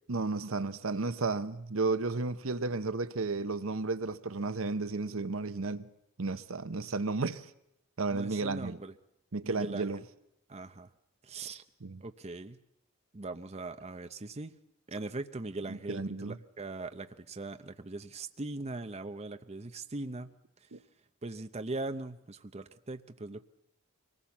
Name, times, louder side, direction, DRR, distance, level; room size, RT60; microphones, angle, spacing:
voice 1, 0.1-5.9 6.2-7.5 8.0-8.8 9.3-10.0 11.8-12.0 15.7-16.4 20.7-20.8, right 3 dB, 65° right, 0.9 m, -33 dB
voice 2, 8.1-8.9 9.4-10.0 10.5-10.9 11.2-11.6 12.0-12.6 13.1-14.5 14.9-20.3 20.6-20.7 21.2-23.4, right 2 dB, 30° right, 0.7 m, -40 dB
24.0 x 19.0 x 7.2 m
head